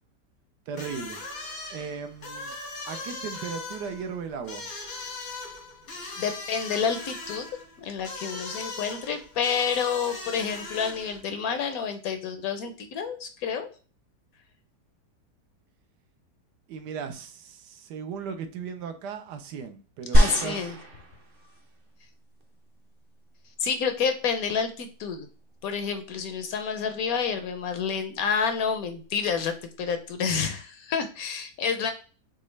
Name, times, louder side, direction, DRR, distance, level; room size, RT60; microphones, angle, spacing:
sound 1, 0.7-11.2, left 3 dB, 90° left, 2.1 m, -39 dB
voice 1, 0.7-1.2 1.7-2.5 2.9-4.7 16.7-20.7, right 6 dB, 85° right, 1.3 m, -37 dB
voice 2, 6.2-7.5 7.8-13.7 20.1-20.8 23.6-25.3 25.6-31.9, left 6 dB, 70° left, 1.0 m, -29 dB
sound 2, 20.1-21.6 22.4-22.5, equal, 45° right, 0.7 m, -23 dB
6.2 x 2.4 x 3.2 m
omnidirectional pair, 1.8 m